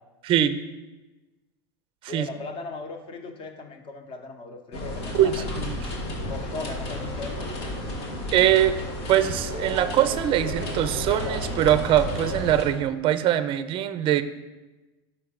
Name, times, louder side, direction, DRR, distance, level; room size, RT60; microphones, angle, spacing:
voice 1, 0.2-0.6 2.1-2.3 5.1-5.8 8.3-8.8 9.1-14.2, right 11 dB, 40° right, 12 dB, 0.5 m, -22 dB
voice 2, 2.1-5.5 6.3-7.8, left 3 dB, 35° left, 5 dB, 1.0 m, -38 dB
sound 1, 4.7-12.6, left 1 dB, 85° left, 1.5 m, -32 dB
5.9 x 4.6 x 5.0 m, 1.1 s
hypercardioid pair, 110°, 14 cm